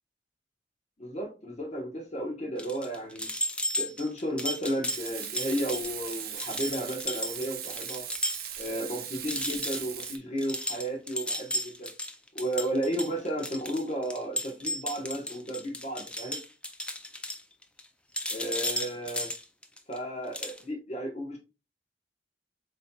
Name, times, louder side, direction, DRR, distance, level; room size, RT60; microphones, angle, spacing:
voice 1, 1.0-3.3 3.8-8.0 8.6-11.9 12.3-16.4 18.3-19.3 19.9-21.4, right 1 dB, 40° left, 0 dB, 1.0 m, -33 dB
sound 1, 2.6-8.7 9.0-9.1 9.3-17.9 18.1-20.0 20.3-20.6, left 1 dB, 5° left, 0.4 m, -34 dB
Frying (food), 4.9-10.2, right 9 dB, 60° right, 0.7 m, -39 dB
7.5 x 2.7 x 2.3 m, 0.30 s
head